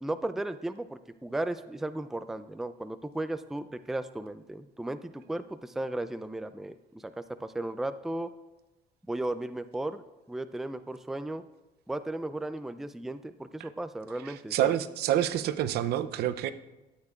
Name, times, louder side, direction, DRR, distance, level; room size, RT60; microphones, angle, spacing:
voice 1, 0.0-7.1 7.4-8.3 9.1-11.4 11.9-14.7, right 1 dB, ahead, 11 dB, 0.4 m, -35 dB
voice 2, 14.5-16.5, right 11 dB, 75° right, 13 dB, 0.6 m, -27 dB
13.5 x 8.7 x 2.4 m, 1.0 s
cardioid pair, 110°, 17 cm